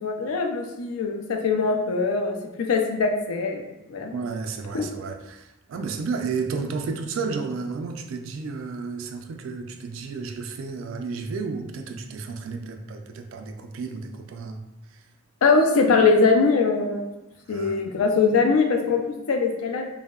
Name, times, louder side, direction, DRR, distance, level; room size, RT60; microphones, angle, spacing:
voice 1, 0.0-3.6 3.9-4.1 4.7-4.8 15.4-17.1 17.5-19.0 19.3-19.8, left 4 dB, 85° left, 3 dB, 0.4 m, -22 dB
voice 2, 4.1-14.6 14.9-15.0 17.5-17.9, right 4 dB, 65° right, 5 dB, 0.3 m, -32 dB
3.4 x 2.0 x 2.2 m, 0.99 s
head